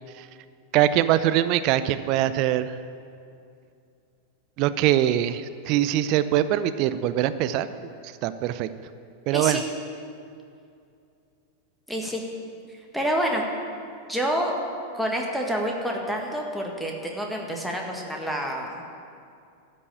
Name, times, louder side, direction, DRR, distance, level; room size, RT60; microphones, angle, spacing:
voice 1, 0.7-2.8 4.6-7.7 8.0-8.7 9.3-9.6, right 12 dB, 40° right, 13 dB, 0.5 m, -23 dB
voice 2, 9.3-9.7 11.9-12.2 12.7-13.4 14.1-14.5 14.9-18.9, equal, ahead, 0 dB, 1.6 m, -28 dB
13.0 x 5.4 x 8.7 m, 2.4 s
figure-of-eight pair, 90°, 0 cm